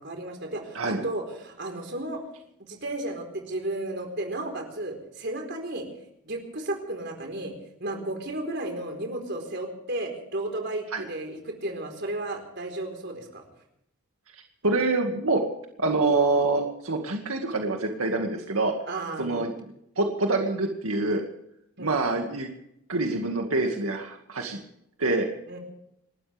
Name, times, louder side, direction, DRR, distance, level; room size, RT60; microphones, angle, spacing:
voice 1, 0.0-2.2 2.7-5.9 6.2-7.5 7.8-13.4 18.9-19.5 21.8-22.0 25.5-25.6, right 1 dB, 55° right, 3 dB, 4.3 m, -33 dB
voice 2, 14.6-15.4 15.8-18.7 19.2-19.5 20.0-21.2 21.8-22.5 22.9-24.6 25.0-25.3, right 3 dB, 90° right, 3 dB, 2.1 m, -25 dB
29.0 x 13.0 x 3.5 m, 0.77 s
head